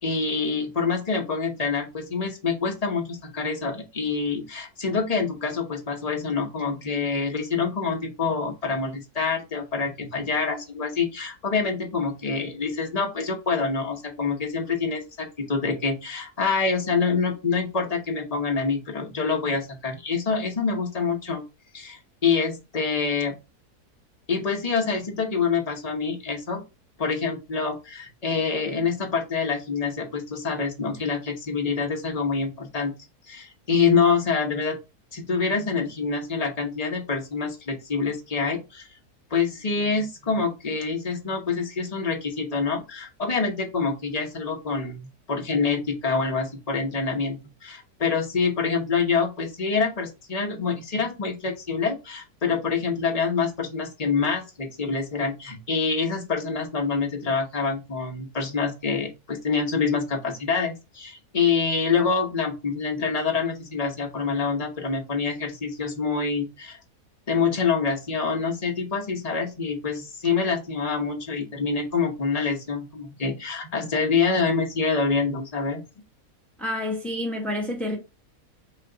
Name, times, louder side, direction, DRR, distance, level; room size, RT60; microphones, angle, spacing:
voice 1, 0.0-21.4 21.7-23.3 24.3-26.6 27.0-32.9 33.3-34.8 35.1-38.9 39.3-66.8 67.3-75.8, left 5 dB, 30° left, 0.9 m, -26 dB
voice 2, 76.6-78.0, left 1 dB, ahead, 0.9 m, -28 dB
5.8 x 2.4 x 3.8 m
omnidirectional pair, 1.7 m